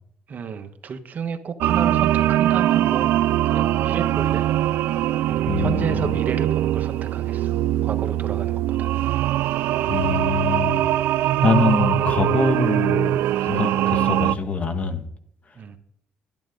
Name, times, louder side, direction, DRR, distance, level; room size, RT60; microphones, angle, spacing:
voice 1, 0.3-3.1 3.4-4.5 5.3-7.6 7.8-8.9 15.6-15.8, right 6 dB, 50° right, 8 dB, 1.1 m, -31 dB
sound 1, 1.6-14.4, right 13 dB, 85° right, 0.4 m, -22 dB
voice 2, 5.5-6.2 9.9-10.9 11.2-15.1, left 4 dB, 40° left, 7 dB, 1.7 m, -24 dB
11.5 x 10.5 x 3.9 m, 0.68 s
cardioid pair, 85°, 4 cm